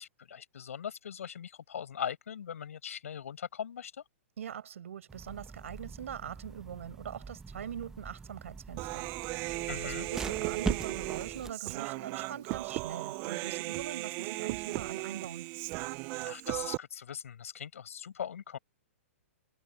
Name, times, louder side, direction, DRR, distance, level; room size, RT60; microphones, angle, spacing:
voice 1, 0.0-4.0 9.7-10.1 16.3-18.6, left 8 dB, 80° left, 6.9 m, -40 dB
voice 2, 4.4-9.1 9.3-15.5, right 9 dB, 75° right, 5.5 m, -42 dB
sound 1, 5.1-11.5, right 4 dB, 5° right, 1.3 m, -41 dB
Human voice, 8.8-16.8, right 24 dB, 25° right, 0.3 m, -36 dB
hypercardioid pair, 160°, 7 cm